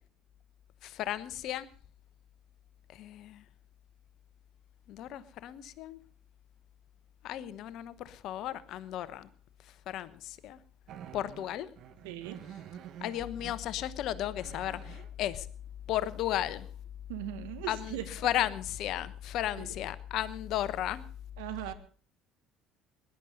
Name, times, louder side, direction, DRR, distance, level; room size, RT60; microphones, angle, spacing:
voice 1, 0.8-1.7 3.0-3.4 4.9-6.0 7.2-9.3 9.9-10.6 11.1-11.7 13.0-15.5 15.9-16.7 17.7-18.0 18.2-21.0, left 12 dB, 60° left, 16 dB, 1.0 m, -34 dB
sound 1, 10.9-13.6 14.1-15.1 17.9-18.0 18.6-18.9, right 9 dB, 60° right, 1.4 m, -48 dB
voice 2, 12.0-12.4 17.1-18.3 19.6-19.8 21.4-21.7, right 12 dB, 75° right, 9 dB, 1.6 m, -39 dB
19.5 x 11.0 x 5.3 m, 0.43 s
hypercardioid pair, 60°, 0 cm